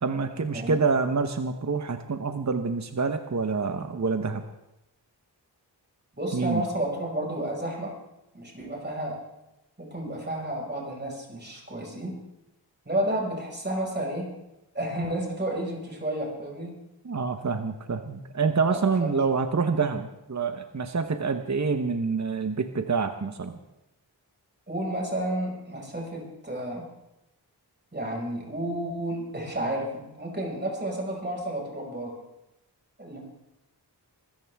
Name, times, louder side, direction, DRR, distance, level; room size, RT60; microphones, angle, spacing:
voice 1, 0.0-4.4 6.3-6.6 17.0-23.6, right 4 dB, 40° right, 8 dB, 1.0 m, -27 dB
voice 2, 6.1-8.0 8.3-9.2 9.8-12.2 12.9-14.3 14.7-16.8 18.7-19.3 24.7-26.9 27.9-32.2 33.0-33.2, right 1 dB, 25° right, -1 dB, 5.5 m, -31 dB
23.5 x 14.0 x 3.5 m, 0.91 s
wide cardioid pair, 70°, 42 cm